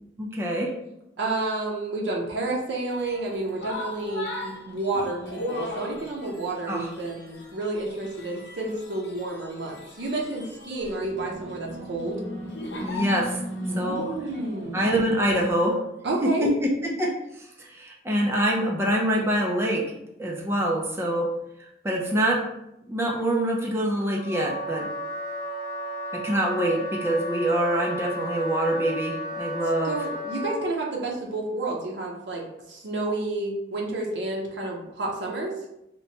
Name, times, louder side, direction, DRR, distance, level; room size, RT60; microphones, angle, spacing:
voice 1, 0.2-0.7 6.7-6.9 12.8-13.3 13.8-14.0 14.7-15.8 16.2-16.7 17.0-17.1 17.6-19.8 20.2-21.3 21.8-22.4 22.9-24.9 26.2-30.0, right 1 dB, 15° right, -2 dB, 0.4 m, -25 dB
voice 2, 1.2-12.2 13.7-15.0 16.0-16.5 29.8-35.5, right 2 dB, 70° right, -2 dB, 0.5 m, -30 dB
sound 1, 2.9-14.9, equal, 75° left, 0.7 m, -37 dB
Wind instrument woodwind instrument, 24.1-30.7, equal, 40° right, 1.2 m, -34 dB
2.9 x 2.1 x 2.7 m, 0.84 s
head